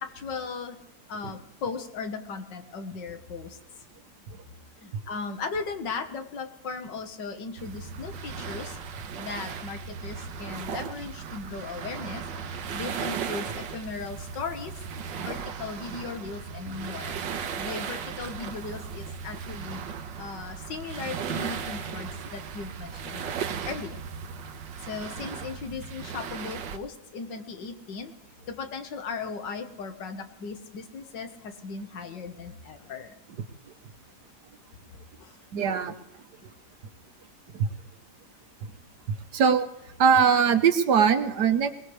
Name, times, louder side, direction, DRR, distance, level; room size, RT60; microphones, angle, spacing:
voice 1, 0.0-0.8 1.1-3.6 4.8-8.8 9.2-12.2 12.7-14.8 15.2-17.2 17.6-19.8 20.2-23.2 23.7-24.0 24.9-28.1 28.5-33.2 35.2-35.4, left 4 dB, 80° left, 7 dB, 2.0 m, -37 dB
sound 1, 7.6-26.8, right 7 dB, 90° right, 1.6 m, -36 dB
voice 2, 35.5-35.9 37.5-37.7 39.3-39.7 40.0-41.7, right 7 dB, 70° right, 8 dB, 1.6 m, -21 dB
22.0 x 20.0 x 3.3 m, 0.84 s
omnidirectional pair, 1.9 m